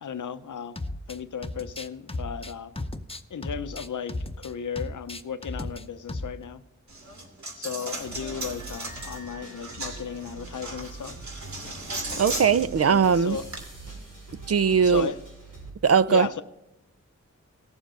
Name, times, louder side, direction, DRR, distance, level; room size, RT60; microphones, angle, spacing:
voice 1, 0.0-0.8 1.1-2.7 3.3-6.6 7.6-11.2 12.9-13.5 14.8-15.2 16.1-16.4, left 7 dB, 85° left, 0.7 m, -35 dB
sound 1, 0.8-1.2 1.4-4.5 4.8-5.8 6.1-6.4, left 2 dB, 20° left, 0.8 m, -35 dB
Coin (dropping), 6.9-13.6, right 2 dB, 70° right, 2.6 m, -37 dB
sound 2, 7.9-15.7, right 2 dB, 85° right, 4.5 m, -43 dB
voice 2, 12.2-13.4 14.5-15.1 15.8-16.3, right 6 dB, 55° right, 0.5 m, -20 dB
18.0 x 7.2 x 3.8 m
wide cardioid pair, 80°, 30 cm